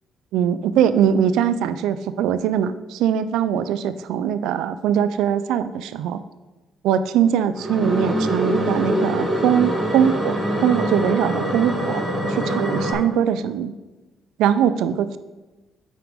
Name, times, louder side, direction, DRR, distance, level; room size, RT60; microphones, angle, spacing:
voice 1, 0.3-6.2 6.8-13.7 14.4-15.2, right 9 dB, 85° right, 13 dB, 0.4 m, -21 dB
sound 1, 7.6-12.9, right 1 dB, 20° right, 2.5 m, -24 dB
9.0 x 6.0 x 3.6 m, 1.1 s
cardioid pair, 115°, 0 cm